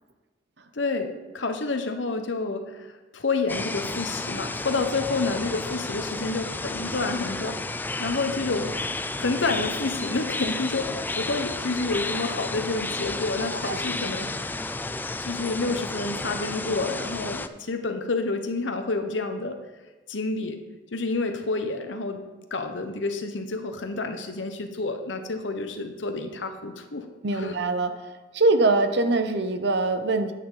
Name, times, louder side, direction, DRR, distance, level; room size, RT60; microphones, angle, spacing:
voice 1, 0.7-2.9 3.1-7.6 8.0-8.7 9.2-10.9 11.1-14.3 15.2-19.6 20.1-20.6 20.9-22.2 22.5-27.0 27.3-27.6, left 3 dB, 90° left, 6 dB, 1.0 m, -29 dB
sound 1, 3.5-17.5, left 2 dB, 10° left, 0.3 m, -32 dB
voice 2, 27.2-27.9 28.3-30.3, right 2 dB, 65° right, 9 dB, 0.8 m, -23 dB
10.0 x 8.5 x 3.9 m, 1.2 s
head